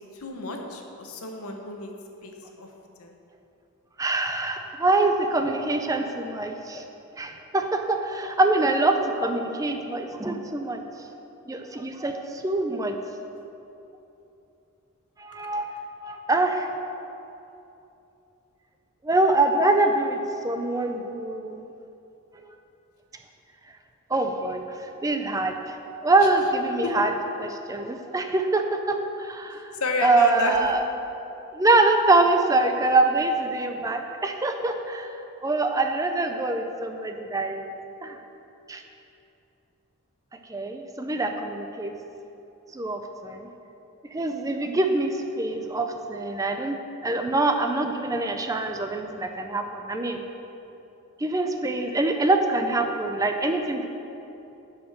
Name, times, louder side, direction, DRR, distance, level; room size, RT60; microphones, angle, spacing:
voice 1, 0.1-1.9 2.2-2.7 3.0-3.1 26.8-26.9 29.8-30.6, left 3 dB, 75° left, 2 dB, 1.1 m, -30 dB
voice 2, 4.0-6.8 7.2-10.8 11.5-13.0 15.2-15.7 16.0-16.9 19.0-21.7 22.3-22.4 24.1-27.1 27.4-29.7 30.0-30.8 31.5-35.1 35.4-37.7 38.0-38.2 38.7-38.8 40.5-41.9 42.7-43.5 44.1-46.8 47.0-50.2 51.2-53.9, right 2 dB, 15° right, 5 dB, 0.4 m, -24 dB
10.5 x 5.0 x 6.4 m, 2.9 s
head